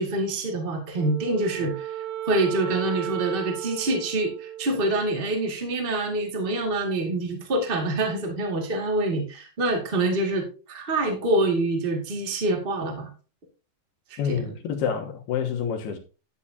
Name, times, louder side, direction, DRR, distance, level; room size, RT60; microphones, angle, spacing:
voice 1, 0.0-1.9 2.3-13.1 14.1-14.4, right 2 dB, 35° right, 0.8 m, -26 dB
Wind instrument woodwind instrument, 0.9-5.4, right 12 dB, 65° right, 3.2 m, -35 dB
voice 2, 14.2-16.0, left 7 dB, 75° left, 3.1 m, -28 dB
10.5 x 9.8 x 2.8 m
omnidirectional pair, 4.9 m